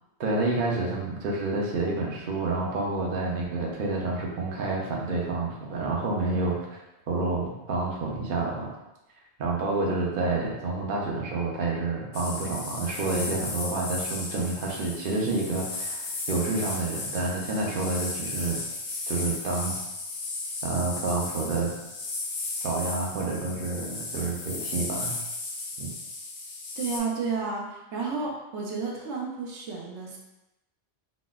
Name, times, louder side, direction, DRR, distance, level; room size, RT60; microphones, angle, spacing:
voice 1, 0.2-6.8 7.1-8.7 9.4-18.6 19.1-19.7 20.6-21.7 22.6-25.2 25.8-25.9, right 3 dB, 55° right, -2 dB, 0.7 m, -29 dB
sound 1, 12.1-27.0, left 3 dB, 65° left, 0.8 m, -35 dB
voice 2, 26.8-30.2, right 4 dB, 85° right, -2 dB, 0.9 m, -31 dB
4.0 x 2.0 x 2.3 m, 0.95 s
omnidirectional pair, 1.1 m